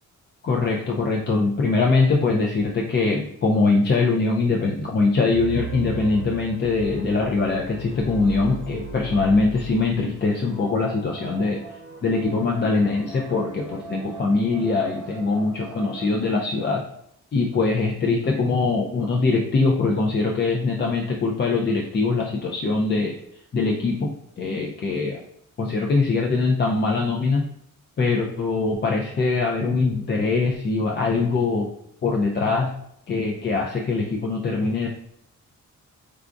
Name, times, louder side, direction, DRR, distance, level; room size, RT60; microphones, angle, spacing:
voice 1, 0.4-11.6 12.0-16.8 17.3-23.2 23.5-25.2 25.6-27.5 28.0-31.7 32.0-32.7 33.1-34.9, left 3 dB, 35° left, -1 dB, 0.4 m, -22 dB
sound 1, 5.3-10.3, right 4 dB, 90° left, 1.0 m, -36 dB
sound 2, 10.5-16.1, right 5 dB, 55° right, 0.7 m, -40 dB
4.7 x 2.3 x 2.5 m, 0.73 s
wide cardioid pair, 130°, 31 cm